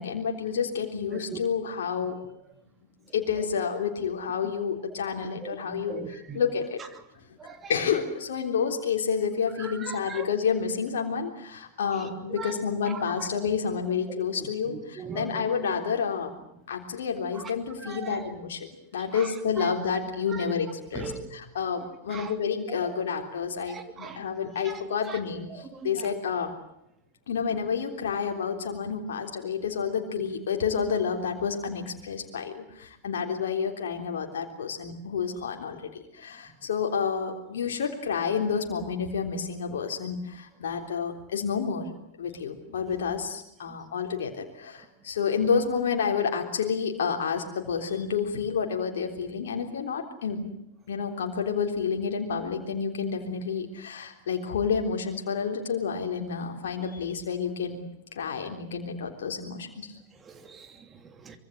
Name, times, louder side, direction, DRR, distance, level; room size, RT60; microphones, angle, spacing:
voice 1, 0.0-2.2 3.1-6.8 7.7-16.3 16.7-26.5 27.3-41.9 42.2-50.5 50.9-57.8 58.1-59.9, left 6 dB, 60° left, 2 dB, 3.6 m, -29 dB
voice 2, 1.1-1.7 5.4-6.4 6.8-6.9 7.4-7.9 9.6-10.3 11.8-13.3 14.1-15.7 17.3-18.3 19.1-19.7 20.3-20.5 20.9-21.3 22.1-22.3 22.7-23.0 23.5-25.2 25.5-26.1 43.7-43.8 44.8-44.9 56.8-56.9 60.1-61.4, right 5 dB, 20° right, 8 dB, 2.9 m, -41 dB
25.0 x 23.5 x 7.8 m, 0.80 s
figure-of-eight pair, 90°, 0 cm